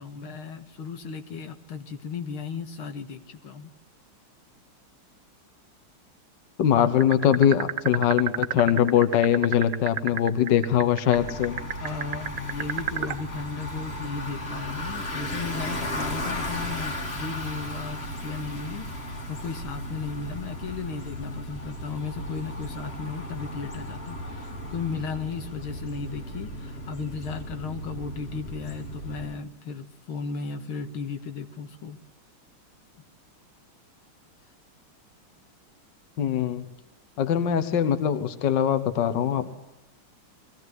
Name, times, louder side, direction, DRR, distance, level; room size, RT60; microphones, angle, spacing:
voice 1, 0.0-3.7 11.8-32.0, left 5 dB, 80° left, 7 dB, 2.4 m, -35 dB
voice 2, 6.6-11.6 36.2-36.7 37.2-39.6, left 9 dB, 60° left, 10 dB, 1.8 m, -22 dB
sound 1, 7.0-13.2, right 10 dB, 60° right, 1.6 m, -28 dB
Bicycle, 11.1-29.4, left 1 dB, 30° left, 2.4 m, -35 dB
21.0 x 17.0 x 9.5 m, 0.92 s
omnidirectional pair, 2.3 m